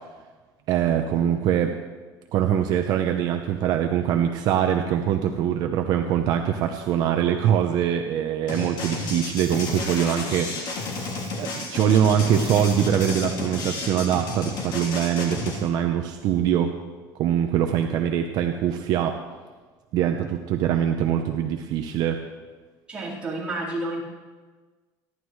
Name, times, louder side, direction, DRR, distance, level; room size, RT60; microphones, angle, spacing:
voice 1, 0.7-1.7 2.3-16.7 17.2-19.2 19.9-22.2, right 9 dB, 55° right, 5 dB, 0.8 m, -23 dB
sound 1, 8.5-15.6, left 3 dB, 60° left, 3.4 m, -31 dB
Coin (dropping), 8.9-11.8 12.1-14.4, left 7 dB, 85° left, 2.0 m, -49 dB
voice 2, 22.9-24.0, right 2 dB, 15° right, -8 dB, 4.3 m, -30 dB
28.0 x 11.5 x 3.2 m, 1.4 s
cardioid pair, 155°, 8 cm